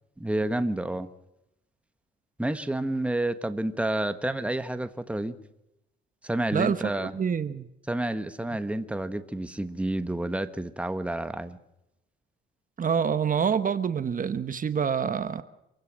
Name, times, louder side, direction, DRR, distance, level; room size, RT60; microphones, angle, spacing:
voice 1, 0.2-1.1 2.4-5.3 6.2-7.1 7.9-11.6, right 1 dB, 5° right, 1.4 m, -29 dB
voice 2, 6.5-7.7 12.8-15.4, right 7 dB, 45° right, 1.1 m, -27 dB
26.5 x 16.5 x 6.3 m
cardioid pair, 90°, 20 cm